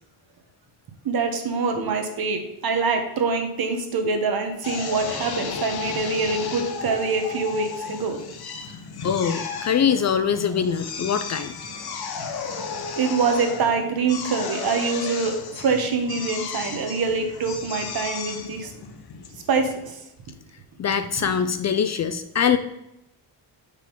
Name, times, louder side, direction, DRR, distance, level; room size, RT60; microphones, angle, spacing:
voice 1, 1.0-8.2 13.0-18.7 19.5-20.0, right 4 dB, 55° right, 5 dB, 1.1 m, -25 dB
Drill, 4.6-19.9, left 5 dB, 60° left, 0.9 m, -34 dB
voice 2, 9.0-11.5 20.8-22.6, left 7 dB, 40° left, 10 dB, 0.4 m, -23 dB
5.0 x 3.6 x 5.5 m, 0.85 s
cardioid pair, 95°, 43 cm